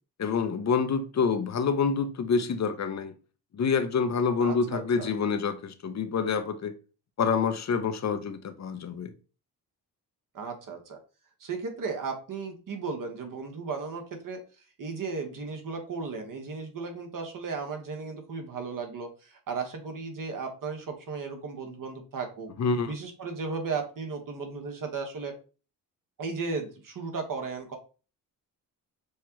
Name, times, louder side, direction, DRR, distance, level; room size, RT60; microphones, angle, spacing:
voice 1, 0.2-3.1 3.5-6.7 7.2-9.1 22.6-22.9, left 5 dB, 40° left, 0.7 m, -27 dB
voice 2, 4.4-5.1 10.3-11.0 11.4-14.4 14.8-22.5 22.9-25.3 26.2-27.8, right 4 dB, 50° right, 1.4 m, -35 dB
6.3 x 2.3 x 3.1 m
supercardioid pair, 65°, 41 cm